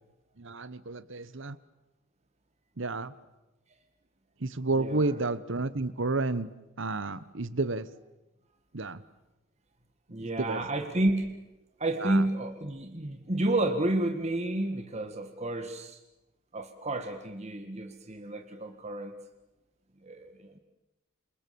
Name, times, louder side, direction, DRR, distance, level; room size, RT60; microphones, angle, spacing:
voice 1, 0.4-1.6 2.8-3.1 4.4-6.5 6.8-7.9 8.7-9.0 10.2-10.6 12.0-12.3, right 3 dB, 60° right, 16 dB, 1.2 m, -31 dB
voice 2, 4.8-5.1 10.1-11.3 11.8-16.0 16.5-19.1 20.0-20.6, right 1 dB, 30° right, 6 dB, 1.9 m, -30 dB
28.5 x 27.0 x 7.0 m, 0.98 s
head